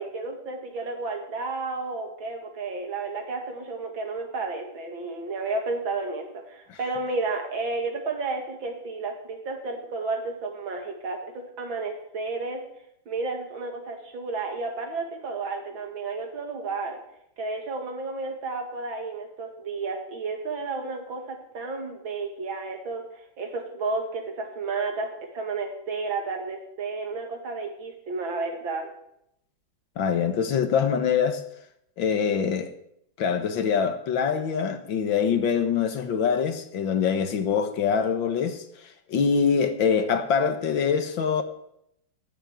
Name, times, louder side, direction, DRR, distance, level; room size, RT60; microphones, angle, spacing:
voice 1, 0.0-12.6 13.1-17.0 17.4-23.0 23.4-25.1 25.3-28.9, right 3 dB, 80° right, 2.9 m, -32 dB
voice 2, 30.0-31.4 32.0-32.7 33.2-38.6 39.1-41.4, left 6 dB, 75° left, 2.0 m, -24 dB
11.5 x 7.3 x 9.1 m
omnidirectional pair, 2.1 m